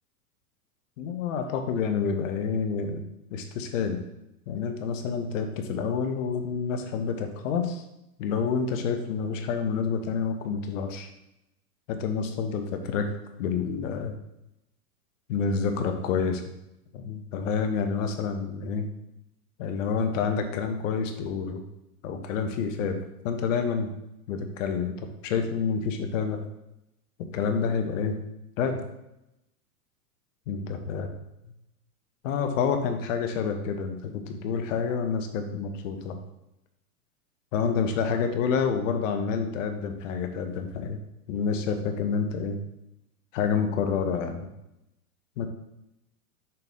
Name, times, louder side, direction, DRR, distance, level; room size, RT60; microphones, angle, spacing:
voice 1, 1.0-3.0 3.3-4.0 4.5-7.8 8.2-11.1 11.9-13.1 13.4-14.1 15.3-16.4 16.9-18.9 19.6-21.6 22.0-23.0 23.2-23.9 24.3-24.9 25.2-26.4 27.3-28.2 28.6-28.8 30.5-31.1 32.2-36.1 37.5-41.0 41.3-42.6 43.3-44.5 45.4-45.5, left 6 dB, 55° left, 6 dB, 1.0 m, -28 dB
6.7 x 4.0 x 3.7 m, 0.88 s
hypercardioid pair, 110°, 45 cm